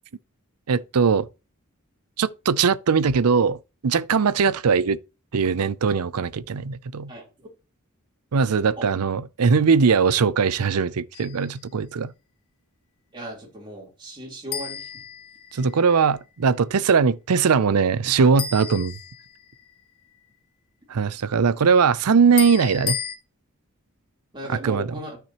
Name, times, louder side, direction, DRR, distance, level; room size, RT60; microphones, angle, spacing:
voice 1, 0.7-1.3 2.2-5.0 5.3-7.1 8.3-12.1 15.5-19.0 20.9-23.0 24.6-24.9, right 5 dB, 85° right, 0.5 m, -20 dB
voice 2, 7.1-7.5 8.8-8.9 13.1-14.9 24.3-25.2, right 1 dB, 20° right, 3.7 m, -37 dB
sound 1, 11.1-11.6 14.5-15.9 18.4-19.7 22.4-23.2, left 8 dB, 80° left, 1.7 m, -33 dB
13.0 x 5.9 x 3.0 m
head